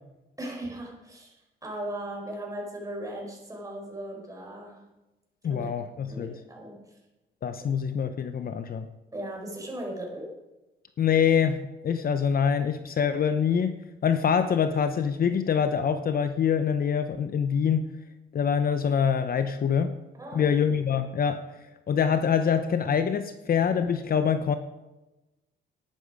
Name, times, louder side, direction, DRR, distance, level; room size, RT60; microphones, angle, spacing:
voice 1, 0.4-4.9 5.5-5.7 6.1-7.0 7.6-7.7 9.1-10.4 20.2-20.5, right 1 dB, 15° right, 0 dB, 4.8 m, -38 dB
voice 2, 5.4-6.4 7.4-8.9 11.0-17.9 18.3-20.0 20.3-21.4 21.9-24.6, left 7 dB, 50° left, 10 dB, 0.8 m, -25 dB
11.5 x 10.0 x 4.9 m, 1.0 s
cardioid pair, 90°, 20 cm